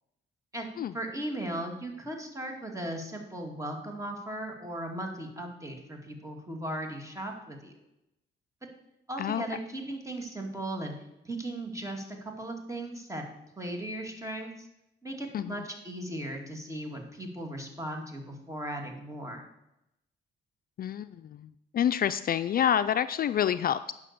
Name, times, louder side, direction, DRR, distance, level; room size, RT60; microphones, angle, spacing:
voice 1, 0.9-7.7 9.1-11.0 11.3-13.2 13.6-14.7 15.0-19.4, right 1 dB, 15° right, 2 dB, 2.3 m, -37 dB
voice 2, 20.8-23.9, left 9 dB, 50° left, 12 dB, 0.4 m, -28 dB
9.9 x 5.9 x 6.7 m, 0.86 s
cardioid pair, 90°, 20 cm